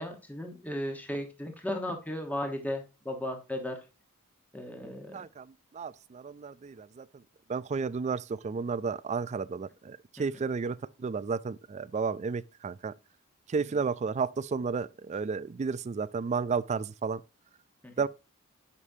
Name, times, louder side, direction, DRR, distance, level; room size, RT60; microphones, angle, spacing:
voice 1, 0.0-3.8 4.5-5.2 10.2-10.3 13.7-13.8 17.8-17.9, left 1 dB, 5° left, 1.1 m, -35 dB
voice 2, 5.1-7.0 7.5-12.9 13.5-17.2 18.0-18.1, right 5 dB, 30° right, 0.3 m, -32 dB
9.8 x 5.2 x 2.7 m
head